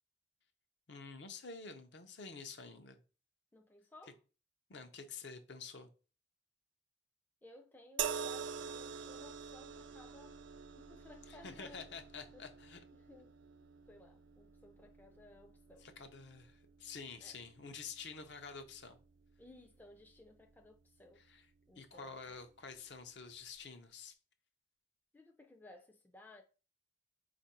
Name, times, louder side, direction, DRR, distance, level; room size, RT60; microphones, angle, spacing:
voice 1, 0.9-3.0 4.7-5.9 11.3-12.8 15.8-19.0 21.2-21.4 21.8-24.2, left 5 dB, 65° left, 0.6 m, -49 dB
voice 2, 3.5-4.2 7.4-10.4 10.7-11.9 12.3-13.4 13.9-15.9 17.2-17.4 19.4-21.2 21.7-22.2 25.1-26.4, left 2 dB, 10° left, 0.3 m, -59 dB
sound 1, 8.0-21.3 22.3-22.4, right 7 dB, 75° right, 0.4 m, -47 dB
4.4 x 2.5 x 4.2 m
head